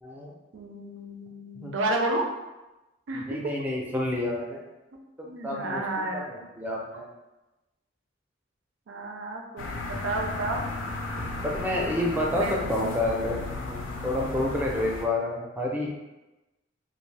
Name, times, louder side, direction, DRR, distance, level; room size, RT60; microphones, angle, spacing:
voice 1, 0.0-0.3 1.6-1.7 3.1-4.6 5.4-7.1 11.4-15.9, left 1 dB, 10° right, -2 dB, 0.4 m, -29 dB
voice 2, 0.5-2.2 3.1-3.2 5.2-6.3 8.9-10.6 12.4-12.6, right 2 dB, 80° right, 1 dB, 0.5 m, -31 dB
sound 1, 9.6-15.1, left 2 dB, 85° left, 0.4 m, -34 dB
2.5 x 2.0 x 3.2 m, 1.0 s
head